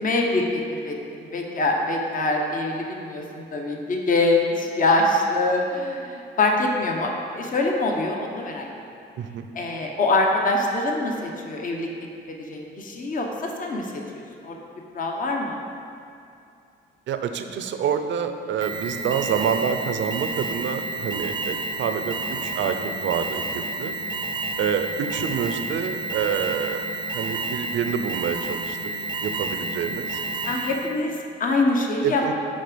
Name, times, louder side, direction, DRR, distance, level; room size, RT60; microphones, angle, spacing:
voice 1, 0.0-8.7 9.5-11.9 12.3-14.6 14.9-15.6 30.4-32.3, left 2 dB, 45° left, 1 dB, 0.9 m, -24 dB
voice 2, 17.1-24.0 24.6-28.8 29.2-30.2 32.0-32.3, right 7 dB, 70° right, 7 dB, 0.6 m, -27 dB
Alarm, 18.6-31.0, right 2 dB, 25° right, 0.6 m, -30 dB
9.7 x 3.8 x 5.1 m, 2.5 s
cardioid pair, 90°, 20 cm